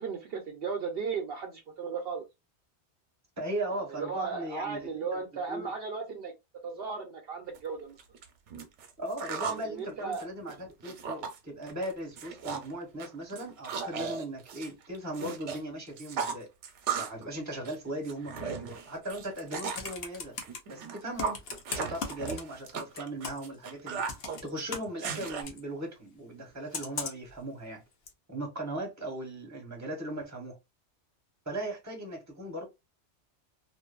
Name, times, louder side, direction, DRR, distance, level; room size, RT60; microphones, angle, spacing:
voice 1, 0.0-2.2 3.7-6.3 6.6-8.0 9.5-10.2, right 5 dB, 65° right, 0.7 m, -36 dB
voice 2, 3.4-5.7 9.0-16.5 17.0-20.3 20.7-21.4 21.7-24.0 24.4-27.8 28.3-30.5 31.5-32.7, right 1 dB, 15° right, 0.9 m, -38 dB
sound 1, 7.5-7.6 8.0-9.6 10.0-11.4 11.7-11.9 12.2-12.7 13.0-15.6 15.9-17.2 17.5-19.9 20.4-25.4, right 6 dB, 85° right, 1.0 m, -36 dB
Computer keyboard, 19.2-20.6 21.2-22.7 23.0-23.6 24.1-25.6 26.7-27.3 28.1-28.2, left 5 dB, 65° left, 0.9 m, -38 dB
2.5 x 2.5 x 2.2 m
omnidirectional pair, 1.2 m